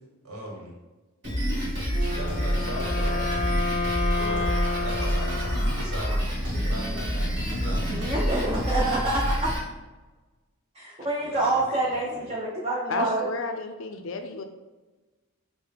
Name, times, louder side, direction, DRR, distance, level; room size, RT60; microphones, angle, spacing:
voice 1, 0.2-0.8 2.0-3.3 3.8-6.2 6.5-8.3 11.2-12.3, equal, 75° right, -2 dB, 1.2 m, -38 dB
Drum kit, 1.2-9.6, equal, 50° right, 1.5 m, -27 dB
Wind instrument woodwind instrument, 1.9-6.1, left 3 dB, 15° left, 0.8 m, -31 dB
voice 2, 7.9-9.5 10.7-13.3, right 2 dB, 25° right, -5 dB, 0.5 m, -27 dB
voice 3, 12.9-14.4, left 4 dB, 60° left, 7 dB, 0.4 m, -32 dB
5.6 x 2.1 x 3.4 m, 1.2 s
head